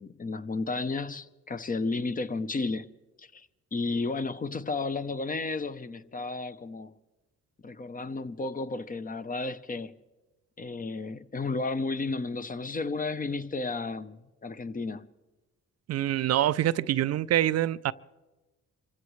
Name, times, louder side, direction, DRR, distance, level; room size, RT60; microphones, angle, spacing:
voice 1, 0.0-2.9 3.2-3.5 3.7-6.9 7.6-9.9 10.6-15.1, left 3 dB, 30° left, 0.7 m, -33 dB
voice 2, 15.9-17.9, right 12 dB, 55° right, 0.4 m, -25 dB
26.5 x 16.0 x 3.2 m
cardioid pair, 90°, 30 cm